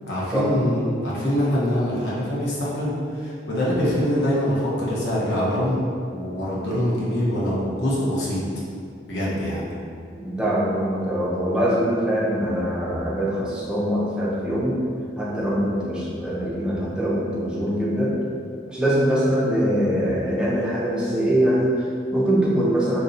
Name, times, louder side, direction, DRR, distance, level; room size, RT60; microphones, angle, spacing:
voice 1, 0.1-5.8 6.1-8.5 9.1-9.7, equal, 70° left, -7 dB, 0.6 m, -24 dB
voice 2, 10.2-14.8 15.2-18.2 18.7-23.0, equal, 5° right, -7 dB, 0.3 m, -23 dB
2.6 x 2.0 x 2.4 m, 2.3 s
head